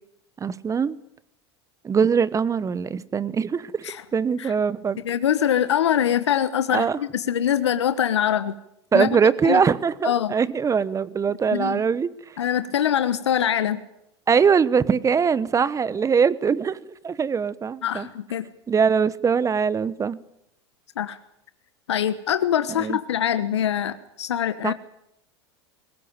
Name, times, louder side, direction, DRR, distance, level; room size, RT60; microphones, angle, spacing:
voice 1, 0.4-1.0 1.8-3.7 4.1-5.0 6.7-7.0 8.9-12.1 14.3-16.8 17.0-18.1 18.7-20.2 22.7-23.0 24.6-24.7, right 6 dB, 20° right, 1.1 m, -22 dB
voice 2, 5.0-8.5 8.9-9.1 9.4-9.6 10.0-10.3 11.5-11.8 12.4-13.8 17.8-18.5 21.0-21.2 21.9-24.7, left 10 dB, 85° left, 1.2 m, -23 dB
22.0 x 19.5 x 9.0 m
hypercardioid pair, 90°, 14 cm